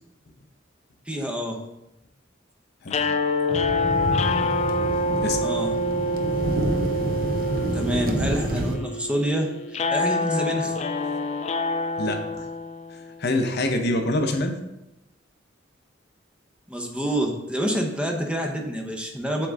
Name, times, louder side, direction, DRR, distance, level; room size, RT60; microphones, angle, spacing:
voice 1, 1.1-1.6 5.4-5.7 7.7-10.8 16.7-19.5, right 1 dB, 5° right, 1 dB, 0.7 m, -27 dB
sound 1, 2.9-13.1, left 2 dB, 35° left, 0.3 m, -26 dB
sound 2, 3.5-8.8, right 1 dB, 50° right, 0.6 m, -28 dB
voice 2, 12.0-12.5 12.9-14.6, left 1 dB, 60° left, 5 dB, 0.7 m, -25 dB
7.4 x 3.8 x 3.5 m, 0.89 s
head